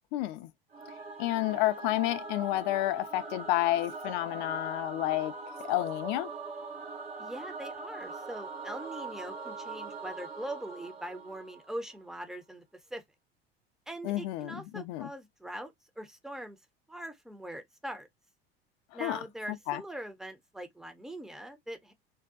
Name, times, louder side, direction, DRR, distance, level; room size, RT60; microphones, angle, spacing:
voice 1, 0.1-0.5 1.2-5.3 5.6-6.3 14.0-15.1 19.0-19.2 19.5-19.8, left 15 dB, 50° left, 0.4 m, -30 dB
Singing / Musical instrument, 0.7-12.0, right 3 dB, 85° right, 0.9 m, -42 dB
voice 2, 7.2-12.6 12.9-13.0 13.9-16.6 16.9-18.1 18.9-21.9, right 1 dB, ahead, 0.5 m, -42 dB
2.6 x 2.2 x 2.3 m
figure-of-eight pair, 70°, 30 cm